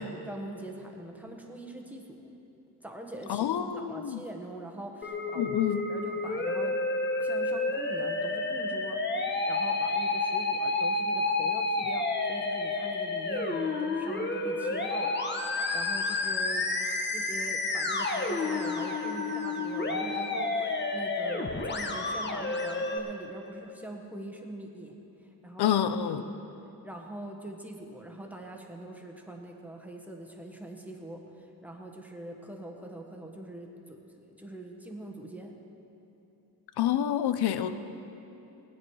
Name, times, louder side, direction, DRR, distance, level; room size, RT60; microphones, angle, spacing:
voice 1, 0.0-2.3 2.8-5.6 5.9-6.8 7.2-16.7 17.1-24.9 25.2-25.8 26.2-26.4 26.8-35.5, right 1 dB, 5° right, 1 dB, 1.4 m, -43 dB
voice 2, 3.3-4.2 5.4-5.8 25.6-26.2 36.8-37.7, left 10 dB, 80° left, 11 dB, 0.7 m, -27 dB
Musical instrument, 5.0-23.0, left 3 dB, 30° left, 1.1 m, -30 dB
18.5 x 9.5 x 4.8 m, 3.0 s
wide cardioid pair, 120°, 38 cm